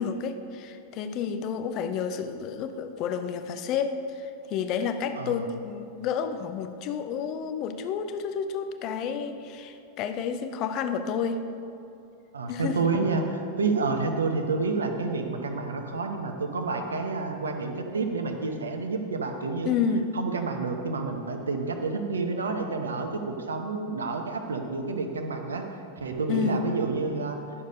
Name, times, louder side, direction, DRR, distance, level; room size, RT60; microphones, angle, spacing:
voice 1, 0.0-11.4 12.5-12.9 19.6-20.1 26.3-26.6, left 6 dB, 40° left, 8 dB, 0.6 m, -30 dB
voice 2, 5.1-5.5 12.3-19.7 20.1-25.6 26.0-27.4, right 4 dB, 70° right, 4 dB, 1.0 m, -29 dB
11.0 x 6.7 x 5.2 m, 2.8 s
figure-of-eight pair, 90°, 0 cm